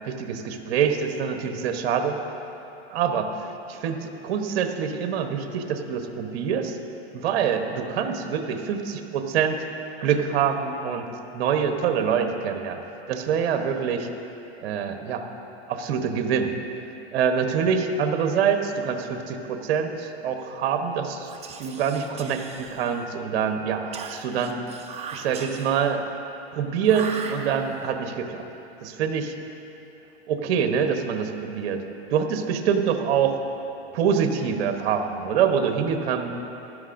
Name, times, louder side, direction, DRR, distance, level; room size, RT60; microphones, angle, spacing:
voice 1, 0.0-2.2 2.9-3.3 3.7-6.8 7.1-9.6 10.0-12.8 13.1-14.0 14.6-15.3 15.7-16.5 17.1-21.3 21.6-24.7 25.1-26.0 26.5-28.4 28.8-29.3 30.3-31.8 32.1-33.3 33.9-36.4, right 7 dB, 60° right, 6 dB, 1.1 m, -25 dB
Whispering, 21.2-23.2 23.9-26.0 26.8-27.9, right 5 dB, 20° right, 0.6 m, -39 dB
16.0 x 12.0 x 2.6 m, 2.9 s
hypercardioid pair, 130°, 33 cm